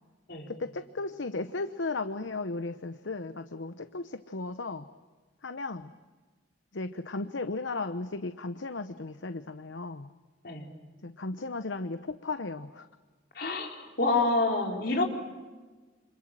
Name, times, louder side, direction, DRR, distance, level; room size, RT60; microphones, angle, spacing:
voice 1, 0.5-4.8 5.4-5.9 6.7-10.1 11.0-12.9, left 3 dB, 90° left, 10 dB, 0.9 m, -35 dB
voice 2, 13.3-15.1, left 2 dB, 60° left, 1 dB, 4.6 m, -27 dB
28.0 x 26.5 x 7.6 m, 1.3 s
head